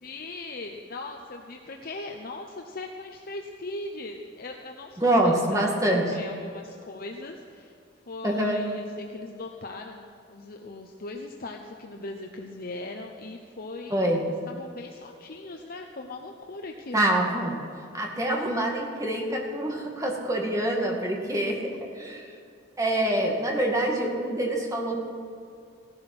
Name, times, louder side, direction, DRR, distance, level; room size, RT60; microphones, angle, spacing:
voice 1, 0.0-7.8 8.1-17.1 23.1-23.4, left 2 dB, 55° left, 2 dB, 0.9 m, -39 dB
voice 2, 5.0-6.1 8.2-8.6 13.9-14.2 16.9-17.6 17.9-21.6 21.9-22.3 22.8-25.0, right 1 dB, 20° right, 0 dB, 2.2 m, -25 dB
16.5 x 12.0 x 6.1 m, 2.5 s
head